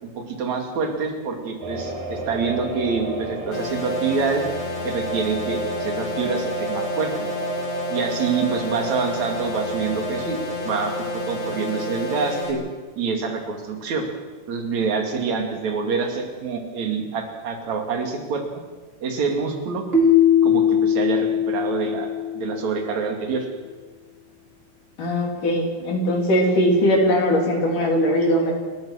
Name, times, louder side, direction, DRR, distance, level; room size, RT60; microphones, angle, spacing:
voice 1, 0.0-4.5 4.8-7.1 7.9-12.6 13.0-14.1 14.5-18.4 19.0-19.8 20.4-23.5, right 5 dB, 55° right, 4 dB, 3.7 m, -26 dB
sound 1, 1.6-12.4, right 1 dB, 85° right, 7.3 m, -31 dB
sound 2, 3.5-12.5, left 1 dB, 45° left, 4.7 m, -31 dB
Keyboard (musical), 19.9-22.8, left 7 dB, 15° right, 3.1 m, -19 dB
voice 2, 25.0-28.5, equal, 65° left, 0 dB, 4.8 m, -20 dB
29.5 x 14.0 x 6.6 m, 1.4 s
omnidirectional pair, 3.9 m